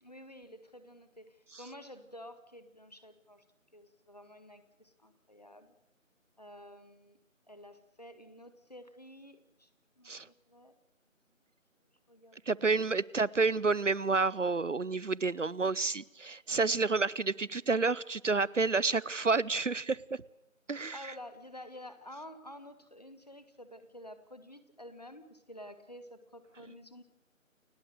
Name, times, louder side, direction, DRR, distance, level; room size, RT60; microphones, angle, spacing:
voice 1, 0.0-3.4 3.7-5.7 6.4-7.2 7.5-9.7 10.0-10.7 12.1-12.4 20.9-27.0, left 1 dB, 30° left, 11 dB, 1.6 m, -50 dB
voice 2, 12.5-20.0 20.7-21.0, right 4 dB, 65° right, 23 dB, 0.7 m, -29 dB
29.5 x 16.5 x 6.5 m, 0.92 s
figure-of-eight pair, 170°, 40 cm